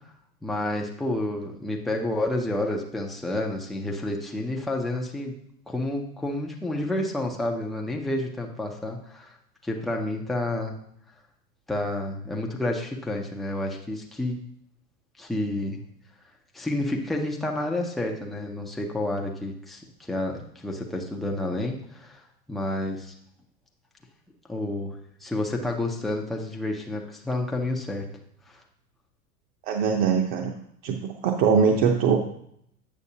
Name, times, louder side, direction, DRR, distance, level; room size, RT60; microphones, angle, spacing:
voice 1, 0.4-5.4 5.7-9.4 9.6-10.8 11.7-14.4 15.2-15.8 16.5-22.2 22.5-23.1 24.5-28.1 28.5-28.6, left 1 dB, ahead, 0 dB, 0.3 m, -30 dB
voice 2, 29.7-30.5 30.8-32.2, right 6 dB, 50° right, 2 dB, 0.8 m, -22 dB
8.3 x 6.3 x 2.8 m, 0.70 s
hypercardioid pair, 110°, 48 cm